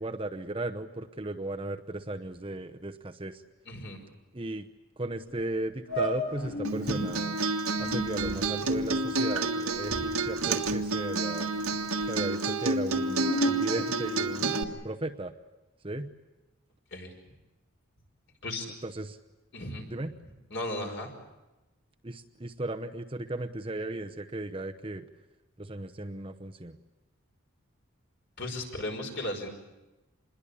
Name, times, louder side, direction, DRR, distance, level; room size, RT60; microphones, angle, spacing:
voice 1, 0.0-3.4 4.3-4.7 5.0-7.4 7.8-11.5 12.1-15.3 15.8-16.1 18.8-19.2 19.9-20.1 22.0-25.1 25.6-26.8, right 2 dB, 25° right, 6 dB, 0.8 m, -36 dB
voice 2, 3.7-4.0 16.9-17.1 18.4-18.7 19.5-20.0 20.5-21.1 28.4-29.5, left 1 dB, 55° left, 3 dB, 5.1 m, -35 dB
sound 1, 5.3-5.4 5.9-7.0 7.7-11.2 11.5-12.1 12.7-14.7, equal, 75° left, 7.1 m, -35 dB
Acoustic guitar, 6.6-14.6, right 3 dB, 85° right, 1.7 m, -30 dB
27.0 x 21.5 x 8.5 m, 1.0 s
head